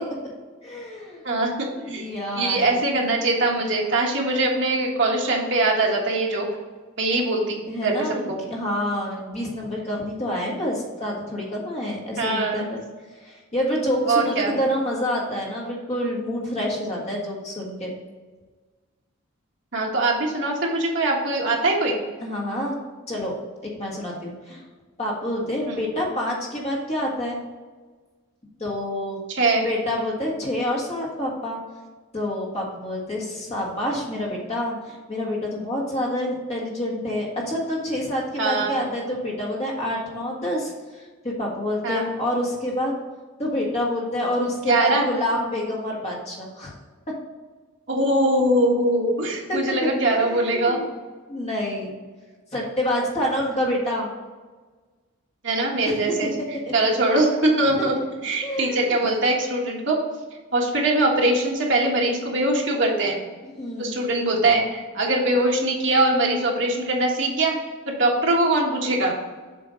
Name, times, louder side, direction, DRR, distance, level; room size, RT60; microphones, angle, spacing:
voice 1, 0.6-1.2 1.8-2.8 7.7-12.6 13.2-17.9 22.2-22.8 23.1-23.3 23.6-24.6 25.0-27.4 28.6-29.2 29.6-31.6 32.1-43.0 43.4-46.7 47.1-47.2 49.5-50.8 51.3-51.9 52.5-54.1 55.8-56.7 57.7-57.9 58.4-59.0 63.4-64.0, left 1 dB, 30° left, -3 dB, 1.6 m, -27 dB
voice 2, 1.2-2.0 2.4-6.5 7.0-7.9 8.3-8.4 12.2-12.7 14.1-14.5 19.7-22.0 25.6-25.8 29.3-29.6 38.4-38.7 41.8-42.0 44.7-45.1 47.9-50.8 55.4-56.3 56.7-58.0 58.2-60.0 60.5-63.2 63.8-67.5 67.9-69.1, right 2 dB, 55° right, -1 dB, 1.5 m, -22 dB
7.6 x 3.6 x 5.1 m, 1.4 s
head